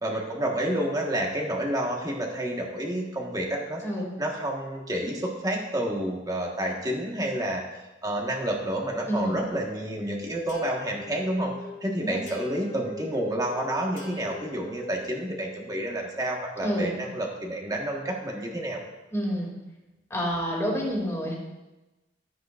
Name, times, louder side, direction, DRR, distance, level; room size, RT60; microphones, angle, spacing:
voice 1, 0.0-3.8 4.2-11.5 11.8-18.8, right 1 dB, 20° right, -1 dB, 1.5 m, -29 dB
voice 2, 9.1-9.4 12.0-12.2 16.6-16.9 19.1-19.5 20.1-21.3, equal, 15° left, -3 dB, 2.6 m, -28 dB
sound 1, 10.5-15.3, left 2 dB, 50° left, 2.2 m, -44 dB
13.0 x 9.3 x 2.6 m, 1.1 s
head